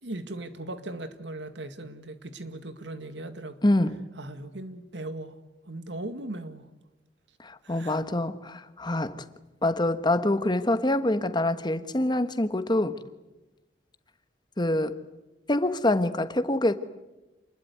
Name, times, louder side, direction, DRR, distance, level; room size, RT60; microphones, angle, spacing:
voice 1, 0.0-3.6 4.2-5.4 5.6-6.7 7.6-8.0, right 2 dB, 75° right, 2.0 m, -38 dB
voice 2, 3.6-4.0 7.4-9.2 9.6-13.0 14.6-15.0 15.5-16.7, left 1 dB, 25° left, 1.3 m, -25 dB
28.0 x 21.0 x 9.5 m
head